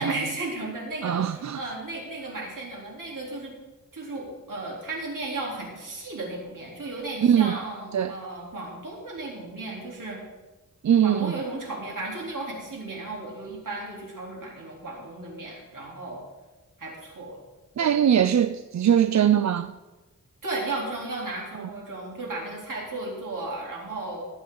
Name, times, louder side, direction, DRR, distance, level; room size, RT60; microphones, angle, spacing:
voice 1, 0.0-3.5 3.9-10.2 11.0-16.3 16.8-17.4 17.8-17.9 20.4-24.2, right 2 dB, 80° right, 3.7 m, -34 dB
voice 2, 1.0-1.6 7.2-7.6 7.9-8.1 10.8-11.3 17.8-19.7 21.6-21.7, right 9 dB, 60° right, 0.4 m, -21 dB
19.5 x 8.4 x 3.9 m
wide cardioid pair, 80°, 32 cm